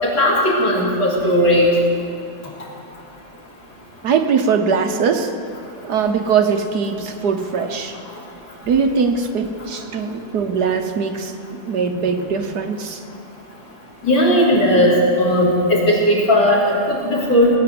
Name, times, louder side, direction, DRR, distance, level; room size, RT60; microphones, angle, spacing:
voice 1, 0.0-1.7 14.0-17.5, equal, 85° left, -4 dB, 4.3 m, -16 dB
voice 2, 4.0-5.3 5.8-7.9 8.7-11.3 11.6-13.0, right 5 dB, 60° right, 6 dB, 1.4 m, -21 dB
18.5 x 9.6 x 7.7 m, 2.5 s
omnidirectional pair, 2.1 m